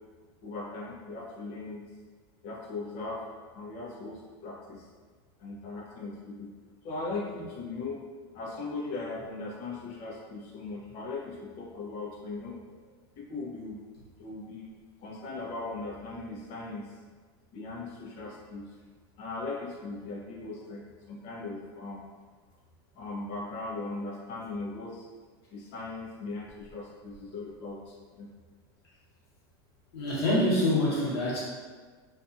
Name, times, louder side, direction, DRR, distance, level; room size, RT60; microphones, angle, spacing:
voice 1, 0.4-1.8 2.4-3.2 3.5-4.9 5.4-6.5 6.8-8.0 8.3-12.6 13.2-13.8 14.2-14.7 15.0-17.0 17.5-18.7 19.2-22.1 22.9-25.1 25.5-28.3, left 3 dB, 50° left, -3 dB, 0.7 m, -38 dB
voice 2, 29.9-31.4, left 1 dB, 75° left, -7 dB, 1.2 m, -25 dB
2.6 x 2.5 x 2.4 m, 1.5 s
supercardioid pair, 120°, 13 cm